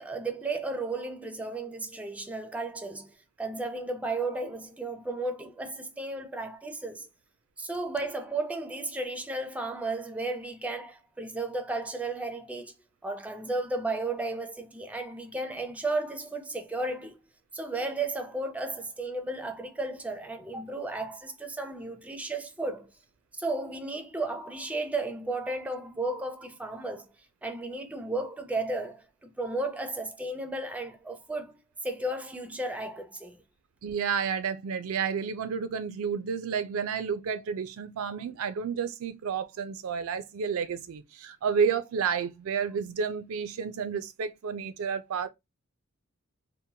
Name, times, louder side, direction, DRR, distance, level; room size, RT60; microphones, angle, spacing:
voice 1, 0.0-7.1 7.6-12.7 13.0-17.2 17.5-22.9 23.3-27.1 27.4-31.5 31.8-33.4, right 2 dB, 5° right, 0.4 m, -34 dB
voice 2, 33.8-45.3, right 6 dB, 80° right, 0.4 m, -31 dB
2.8 x 2.1 x 2.7 m
head